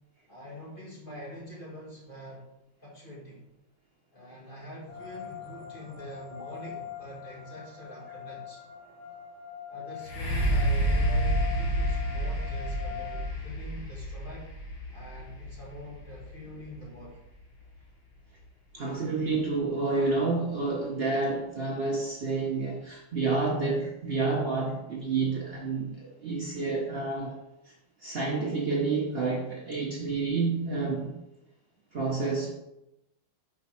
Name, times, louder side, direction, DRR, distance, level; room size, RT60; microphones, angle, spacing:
voice 1, 0.3-2.4 2.8-3.5 4.1-8.6 9.7-14.5 14.9-17.2, equal, 25° left, -5 dB, 2.0 m, -44 dB
sound 1, 4.9-13.2, left 10 dB, 75° left, 3.2 m, -42 dB
sound 2, 10.0-17.8 18.4-18.5, right 1 dB, 55° left, 1.6 m, -29 dB
voice 2, 18.7-27.3 28.0-31.1 31.9-32.5, right 3 dB, 90° right, -2 dB, 0.5 m, -29 dB
5.1 x 4.2 x 5.6 m, 0.88 s
omnidirectional pair, 2.3 m